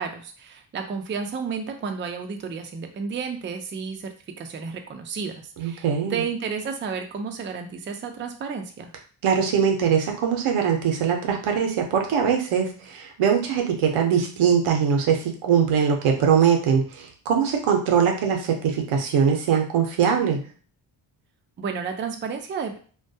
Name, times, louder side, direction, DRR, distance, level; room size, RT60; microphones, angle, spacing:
voice 1, 0.0-4.1 4.4-8.9 21.6-22.8, right 5 dB, 25° right, 5 dB, 0.3 m, -32 dB
voice 2, 5.6-6.2 9.2-20.4, right 7 dB, 85° right, 3 dB, 0.7 m, -22 dB
2.2 x 2.2 x 2.6 m, 0.42 s
cardioid pair, 70°, 49 cm